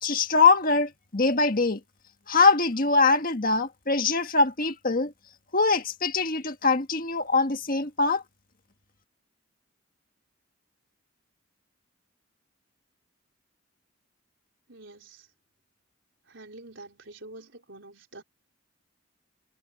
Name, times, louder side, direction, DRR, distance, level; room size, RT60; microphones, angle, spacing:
voice 1, 0.0-1.8 2.3-5.1 5.5-8.2, left 4 dB, 45° left, 1.7 m, -23 dB
voice 2, 14.7-15.3 16.3-18.2, right 2 dB, 65° right, 4.6 m, -46 dB
head